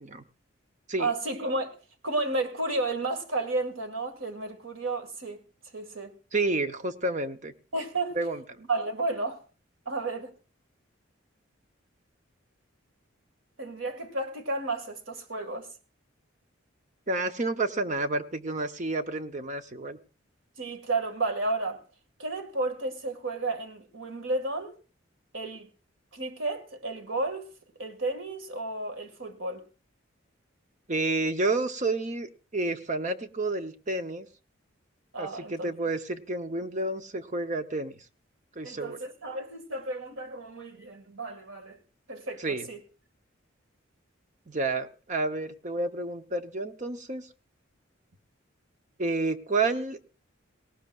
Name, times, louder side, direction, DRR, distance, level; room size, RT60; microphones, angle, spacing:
voice 1, 1.0-1.8 2.0-5.4 5.7-6.1 7.7-8.2 8.6-9.4 9.9-10.3 13.6-15.7 20.6-21.8 22.2-24.8 25.3-25.7 26.1-27.5 27.8-29.6 35.1-35.7 38.6-41.8 42.1-42.8, right 2 dB, 90° right, 2.0 m, -32 dB
voice 2, 6.3-7.5 8.1-8.6 17.1-20.0 30.9-34.3 35.2-38.0 38.6-39.0 42.4-42.7 44.5-47.3 49.0-50.0, right 2 dB, 40° right, 0.9 m, -30 dB
18.5 x 18.0 x 2.4 m
head